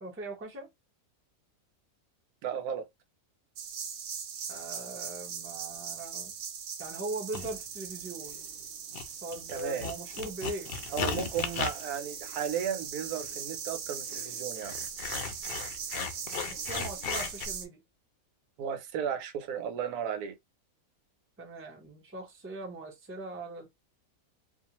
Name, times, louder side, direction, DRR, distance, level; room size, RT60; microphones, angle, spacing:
voice 1, 0.0-0.7 4.5-6.3 6.8-8.4 9.2-11.3 16.4-17.8 21.4-23.7, right 2 dB, 15° right, 0.4 m, -40 dB
voice 2, 2.4-2.9 9.5-9.9 10.9-14.7 18.6-20.3, right 8 dB, 85° right, 1.1 m, -34 dB
sound 1, 3.6-17.7, right 7 dB, 65° right, 0.9 m, -40 dB
sound 2, 7.3-7.6 8.3-8.6 8.9-17.5, left 7 dB, 65° left, 0.6 m, -37 dB
2.5 x 2.4 x 2.8 m
omnidirectional pair, 1.5 m